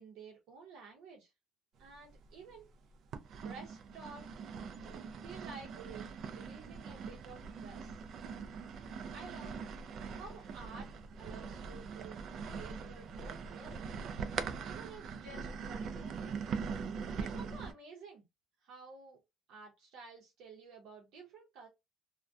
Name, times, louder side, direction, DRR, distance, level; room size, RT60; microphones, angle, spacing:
voice 1, 0.0-1.3 1.8-2.7 3.4-4.3 4.8-7.9 9.1-9.6 10.1-10.9 11.2-12.2 12.4-13.9 14.6-16.4 17.2-18.2 18.6-19.2 19.5-21.7, right 4 dB, 65° right, 0.7 m, -52 dB
sound 1, 1.9-2.6 3.1-17.7, right 5 dB, 40° right, 0.3 m, -42 dB
2.5 x 2.1 x 2.3 m
cardioid pair, 170°, 0 cm